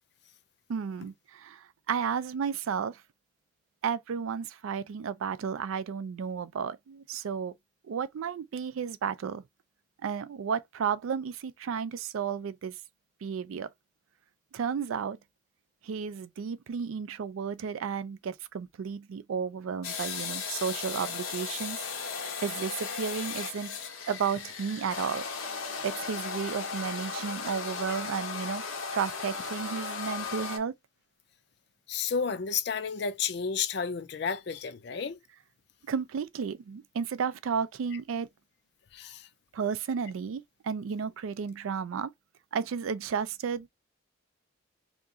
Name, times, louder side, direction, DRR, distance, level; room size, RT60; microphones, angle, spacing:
voice 1, 0.7-3.0 3.8-7.5 7.9-9.4 10.0-12.8 13.2-13.7 14.5-15.2 15.8-21.8 22.4-23.8 24.1-25.2 25.8-28.6 28.9-30.7 35.9-38.3 39.5-42.1 42.5-43.7, right 6 dB, 80° right, 0.4 m, -33 dB
sound 1, 19.8-30.6, left 5 dB, 90° left, 0.9 m, -36 dB
voice 2, 31.9-35.2 38.9-39.3, left 6 dB, 55° left, 0.4 m, -31 dB
2.8 x 2.4 x 3.5 m
head